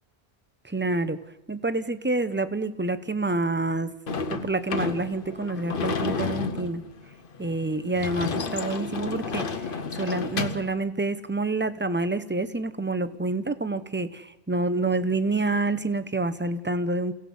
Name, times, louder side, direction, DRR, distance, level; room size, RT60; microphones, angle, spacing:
voice 1, 0.6-1.2 1.5-3.9 4.3-6.8 7.4-17.1, right 2 dB, 10° right, 12 dB, 0.8 m, -28 dB
Sliding door / Slam, 4.1-10.7, left 4 dB, 55° left, 1.1 m, -31 dB
28.5 x 17.5 x 5.5 m, 0.95 s
omnidirectional pair, 1.1 m